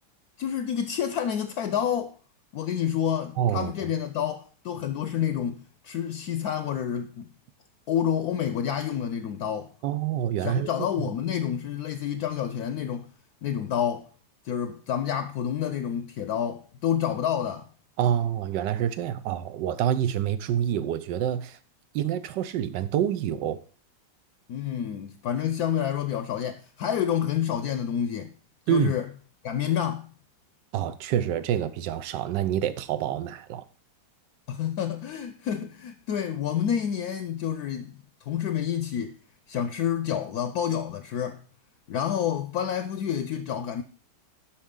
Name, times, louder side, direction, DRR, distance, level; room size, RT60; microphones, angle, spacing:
voice 1, 0.4-2.1 2.5-7.3 7.9-9.7 10.4-13.1 13.4-14.1 14.4-17.7 24.5-28.3 28.7-29.0 29.4-30.1 34.5-38.0 38.3-39.1 39.5-41.4 41.9-43.8, left 9 dB, 70° left, 1.0 m, -28 dB
voice 2, 3.4-3.7 9.8-10.7 18.0-21.6 21.9-23.6 28.7-28.9 30.7-33.6, right 10 dB, 85° right, 1.3 m, -27 dB
11.5 x 4.4 x 3.7 m
omnidirectional pair, 1.9 m